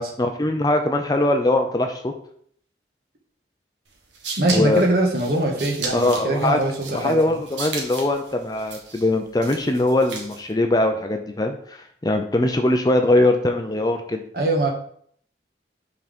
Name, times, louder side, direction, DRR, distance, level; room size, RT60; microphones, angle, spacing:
voice 1, 0.2-2.1 4.5-4.8 5.9-6.6 6.9-14.2, left 1 dB, 20° left, 5 dB, 0.5 m, -21 dB
sound 1, 3.9-10.5, right 4 dB, 85° right, 1.5 m, -35 dB
voice 2, 4.4-7.4 14.3-14.7, right 2 dB, 55° right, 0 dB, 1.4 m, -22 dB
5.6 x 4.0 x 5.1 m, 0.63 s
head